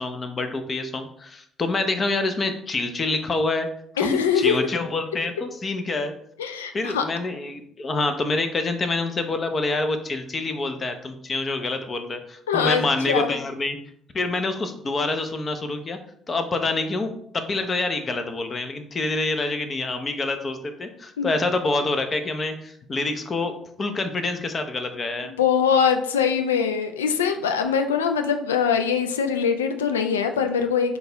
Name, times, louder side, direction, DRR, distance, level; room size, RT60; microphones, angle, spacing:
voice 1, 0.0-3.7 4.0-6.1 6.7-13.8 14.1-16.0 16.3-23.5 23.8-25.3, left 2 dB, 35° left, 7 dB, 0.6 m, -26 dB
voice 2, 4.0-4.6 6.4-7.0 12.5-13.3 21.2-21.3 25.4-31.0, left 7 dB, 90° left, 6 dB, 0.3 m, -22 dB
3.9 x 2.3 x 3.9 m, 0.67 s
hypercardioid pair, 55°, 0 cm